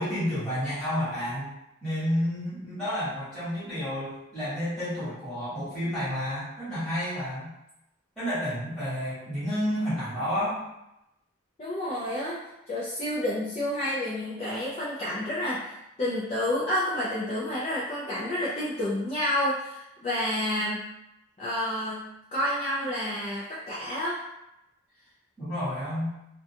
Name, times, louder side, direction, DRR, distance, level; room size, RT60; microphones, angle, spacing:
voice 1, 0.0-1.5 1.8-7.5 8.2-10.6 25.4-26.1, equal, 5° left, -15 dB, 1.1 m, -30 dB
voice 2, 11.6-12.4 12.7-15.7 16.0-20.9 21.4-24.2, left 1 dB, 30° left, -8 dB, 0.4 m, -29 dB
2.4 x 2.2 x 2.7 m, 0.88 s
head